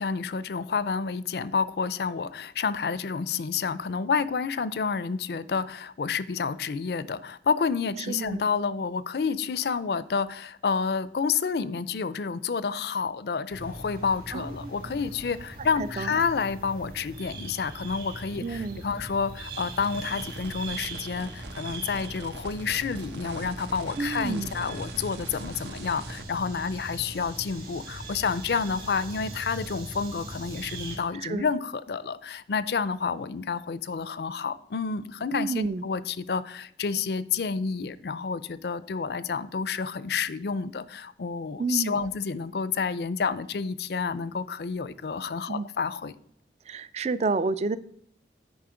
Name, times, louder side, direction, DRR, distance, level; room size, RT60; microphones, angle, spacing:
voice 1, 0.0-46.1, left 5 dB, 65° left, 16 dB, 0.4 m, -29 dB
voice 2, 8.1-8.4 14.3-15.0 15.6-16.2 18.4-18.8 24.0-24.6 31.1-31.5 35.3-35.8 41.6-42.1 45.5-45.7 46.7-47.8, right 3 dB, 40° right, 16 dB, 0.4 m, -30 dB
sound 1, 13.5-31.0, right 2 dB, 55° right, 2.3 m, -40 dB
sound 2, 19.4-26.2, right 3 dB, 80° right, 0.8 m, -44 dB
9.4 x 4.9 x 4.9 m, 0.67 s
head